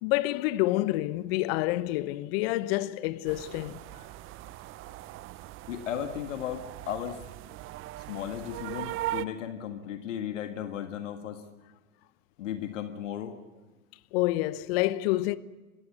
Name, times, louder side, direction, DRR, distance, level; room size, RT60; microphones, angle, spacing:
voice 1, 0.0-3.8 14.1-15.4, left 17 dB, 45° left, 1.0 m, -28 dB
sound 1, 3.3-9.3, right 16 dB, 30° right, 0.7 m, -39 dB
voice 2, 5.7-7.2 8.1-11.4 12.4-13.4, left 9 dB, 65° left, 1.9 m, -35 dB
27.0 x 15.5 x 8.4 m
figure-of-eight pair, 95°, 41 cm